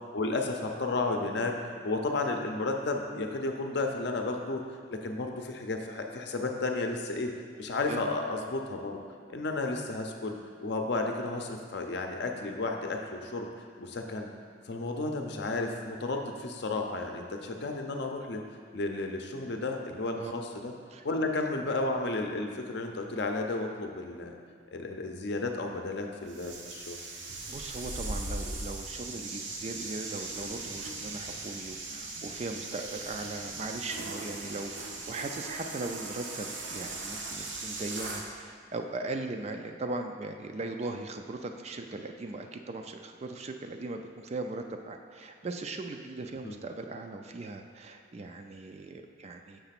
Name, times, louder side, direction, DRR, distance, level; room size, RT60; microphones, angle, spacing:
voice 1, 0.1-1.6 1.8-4.6 4.9-7.3 7.6-9.0 9.3-10.4 10.6-13.5 13.8-14.3 14.7-18.4 18.7-20.7 21.0-24.4 24.7-27.0 46.4-46.5, left 2 dB, 60° left, 3 dB, 0.6 m, -32 dB
sound 1, 26.3-38.3, right 2 dB, 75° right, 0.8 m, -39 dB
voice 2, 27.5-49.6, right 2 dB, 35° right, 5 dB, 0.3 m, -39 dB
6.8 x 3.3 x 5.8 m, 2.1 s
head